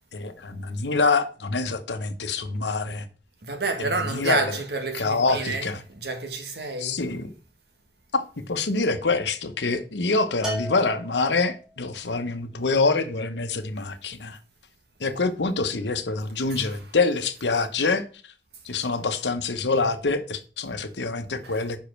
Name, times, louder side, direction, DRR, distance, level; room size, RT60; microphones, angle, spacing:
voice 1, 0.1-3.1 3.8-4.6 4.9-5.8 6.8-7.3 8.1-14.4 15.0-18.0 18.6-21.8, left 3 dB, 90° left, 1.0 m, -26 dB
voice 2, 3.4-7.0 16.6-16.7 21.4-21.5, right 3 dB, 70° right, 1.6 m, -29 dB
Bell, 10.4-11.8, equal, 5° right, 1.7 m, -35 dB
5.7 x 5.2 x 5.9 m
head